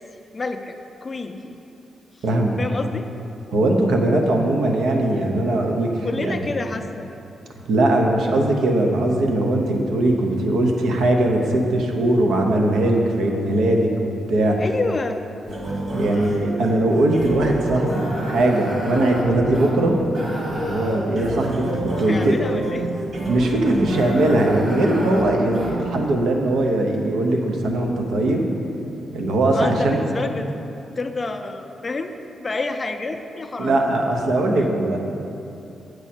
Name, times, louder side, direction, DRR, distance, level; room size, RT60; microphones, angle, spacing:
voice 1, 0.3-1.6 2.6-3.1 6.0-7.1 14.6-15.2 22.1-22.9 29.5-32.1 32.4-33.9 34.5-34.6, left 3 dB, 25° left, 6 dB, 0.4 m, -29 dB
voice 2, 2.2-2.6 3.5-6.4 7.7-14.6 15.9-20.0 20.5-21.7 22.0-22.4 23.3-28.4 29.1-30.0 33.6-35.0, right 1 dB, 85° right, 1 dB, 0.9 m, -20 dB
sound 1, 15.5-26.1, right 1 dB, 45° right, 1.6 m, -29 dB
8.0 x 6.1 x 4.3 m, 2.8 s
wide cardioid pair, 140°, 0 cm